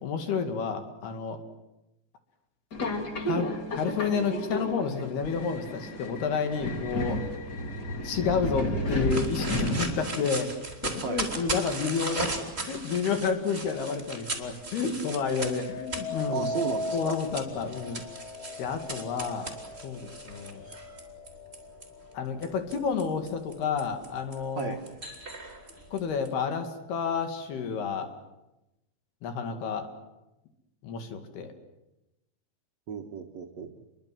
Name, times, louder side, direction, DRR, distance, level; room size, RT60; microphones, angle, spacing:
voice 1, 0.0-1.4 3.3-7.2 8.0-10.5 10.8-16.5 16.9-18.0 18.6-19.5 19.8-20.6 22.1-24.8 25.9-28.1 29.2-29.9 30.8-31.5, left 5 dB, 60° left, 7 dB, 4.0 m, -30 dB
Subway metro underground, 2.7-10.3, equal, 35° left, 1.8 m, -32 dB
sound 1, 9.1-21.9 22.4-26.3, right 3 dB, 15° right, 2.9 m, -37 dB
sound 2, 15.0-24.2 24.7-25.2, left 3 dB, 80° left, 8.4 m, -39 dB
voice 2, 16.3-17.2 24.6-24.8 32.9-33.7, right 6 dB, 60° right, 2 dB, 1.8 m, -34 dB
29.0 x 22.5 x 7.7 m, 0.94 s
omnidirectional pair, 5.3 m